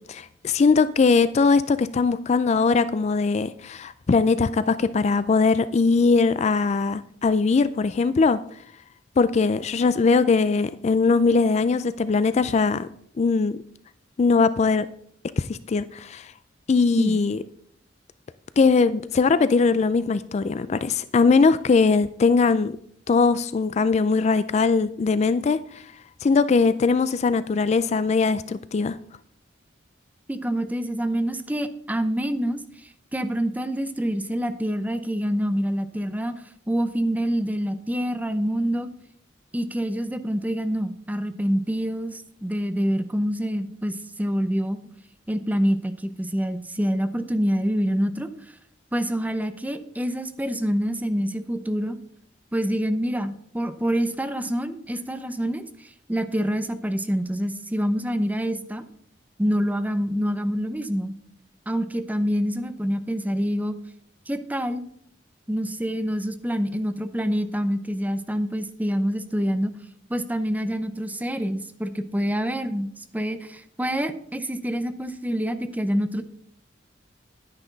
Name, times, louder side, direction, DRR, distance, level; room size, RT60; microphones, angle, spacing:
voice 1, 0.1-8.4 9.2-12.9 13.2-13.6 14.2-14.9 15.4-16.3 16.7-17.4 18.6-22.8 23.1-25.8 26.2-29.0, left 4 dB, 40° left, 0.3 m, -21 dB
voice 2, 30.3-32.6 33.1-36.3 36.7-38.9 39.5-44.8 45.3-48.3 48.9-52.0 52.5-58.8 59.4-61.1 61.7-63.8 64.3-64.8 65.5-69.7 70.1-72.9 73.1-76.2, equal, 10° right, 0.7 m, -26 dB
10.5 x 9.8 x 3.9 m
head